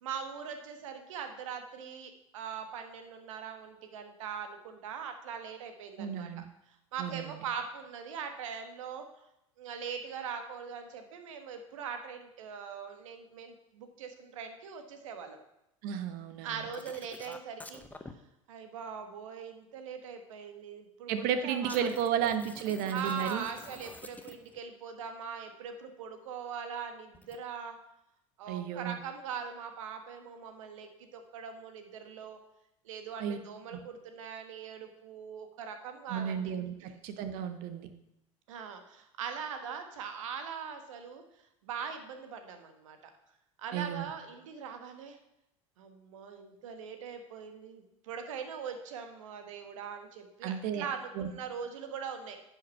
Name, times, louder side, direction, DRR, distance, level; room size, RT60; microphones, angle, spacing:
voice 1, 0.0-9.0 9.6-15.4 16.4-18.2 18.5-22.1 22.9-27.8 28.4-32.4 32.8-36.5 36.8-37.0 38.5-41.2 41.6-43.0 43.6-45.2 45.8-52.4, right 7 dB, 75° right, 6 dB, 1.4 m, -41 dB
voice 2, 6.0-6.5 7.0-7.4 15.8-16.7 21.1-23.4 28.5-29.0 33.2-33.4 33.7-33.8 36.1-36.7 37.0-37.9 43.7-44.1 50.4-50.8 51.2-51.3, right 8 dB, 60° right, 9 dB, 1.2 m, -33 dB
sound 1, 16.7-18.1 21.6-24.6 27.1-27.4, left 2 dB, 10° left, 0.9 m, -48 dB
10.0 x 5.9 x 5.8 m, 0.85 s
hypercardioid pair, 75°, 17 cm